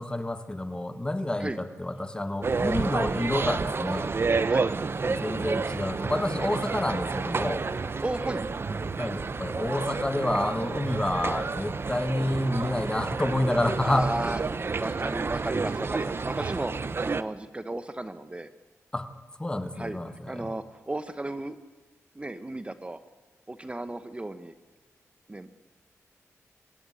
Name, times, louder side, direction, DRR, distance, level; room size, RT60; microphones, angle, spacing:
voice 1, 0.0-4.1 5.1-7.6 9.0-14.1 18.9-19.1 19.4-20.5, left 1 dB, 15° left, 10 dB, 1.6 m, -29 dB
sound 1, 2.4-17.2, right 4 dB, 45° right, 0.8 m, -30 dB
voice 2, 8.0-8.4 8.7-8.8 13.8-18.5 19.8-20.0 20.2-21.6 22.1-23.0 23.5-24.5 25.3-25.5, right 2 dB, 20° right, 11 dB, 1.0 m, -34 dB
25.5 x 15.5 x 9.8 m, 1.2 s
wide cardioid pair, 85°, 5 cm